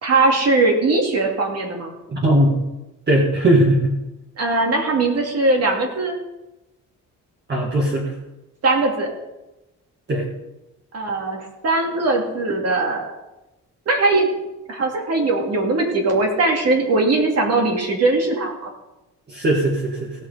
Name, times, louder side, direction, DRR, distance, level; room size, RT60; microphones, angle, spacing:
voice 1, 0.0-1.9 4.4-6.1 8.6-9.1 10.9-13.1 13.9-14.3 14.7-18.7, right 2 dB, 55° right, 1 dB, 2.6 m, -20 dB
voice 2, 2.1-2.6 3.1-4.0 7.5-8.1 10.1-10.3 19.3-20.1, right 1 dB, 35° right, -3 dB, 2.0 m, -18 dB
16.5 x 6.2 x 5.1 m, 0.98 s
cardioid pair, 135°, 31 cm